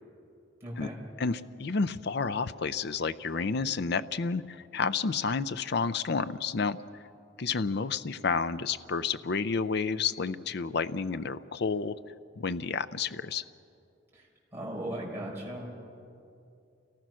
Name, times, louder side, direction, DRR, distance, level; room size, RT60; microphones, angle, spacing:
voice 1, 0.6-1.0 14.1-14.3 14.5-15.7, right 1 dB, 10° right, -5 dB, 5.8 m, -37 dB
voice 2, 1.2-7.0 7.4-11.9 12.4-13.4, left 5 dB, 60° left, 13 dB, 0.5 m, -30 dB
28.5 x 18.5 x 6.2 m, 2.6 s
head